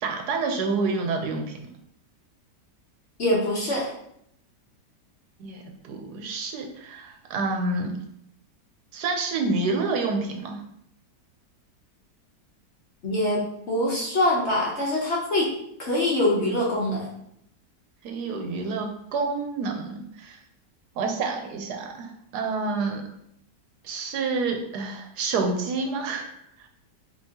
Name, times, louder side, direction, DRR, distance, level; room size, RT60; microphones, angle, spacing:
voice 1, 0.0-1.6 5.4-8.0 8.9-10.6 18.0-20.4 21.0-23.0 23.8-26.3, right 3 dB, 75° right, 3 dB, 1.1 m, -28 dB
voice 2, 3.2-3.9 13.0-13.4 13.7-15.5 15.8-17.1, left 1 dB, 50° left, -3 dB, 0.9 m, -24 dB
5.4 x 2.9 x 2.8 m, 0.74 s
omnidirectional pair, 1.8 m